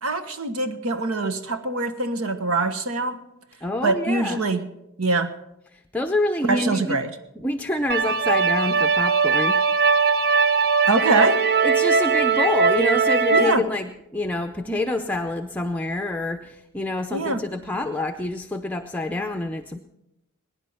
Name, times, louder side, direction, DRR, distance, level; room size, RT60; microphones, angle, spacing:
voice 1, 0.0-3.2 3.8-4.7 5.0-5.3 6.5-7.2 10.9-11.4 13.3-13.6 17.1-17.4, right 3 dB, 85° right, 9 dB, 1.3 m, -23 dB
voice 2, 3.6-4.4 5.7-7.0 7.4-9.6 11.6-19.8, left 2 dB, 10° left, 5 dB, 0.6 m, -27 dB
sound 1, 7.9-13.5, right 5 dB, 45° right, 0.6 m, -20 dB
21.5 x 10.0 x 5.7 m, 0.88 s
head